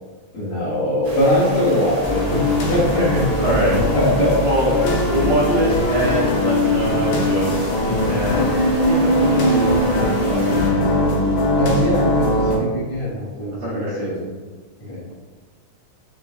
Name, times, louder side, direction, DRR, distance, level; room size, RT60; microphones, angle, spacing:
voice 1, 0.3-3.3 3.7-5.3 7.8-8.3 11.6-14.3 14.8-15.0, left 1 dB, 60° left, -9 dB, 1.7 m, -22 dB
sound 1, 1.0-10.7, right 1 dB, 55° right, 0.9 m, -32 dB
sound 2, 2.0-12.6, left 1 dB, 80° left, 2.1 m, -20 dB
voice 2, 2.8-3.8 4.4-4.7 5.0-8.6 8.9-11.1 13.6-14.1, equal, 75° right, -9 dB, 2.3 m, -24 dB
5.8 x 2.2 x 2.4 m, 1.3 s
omnidirectional pair, 3.3 m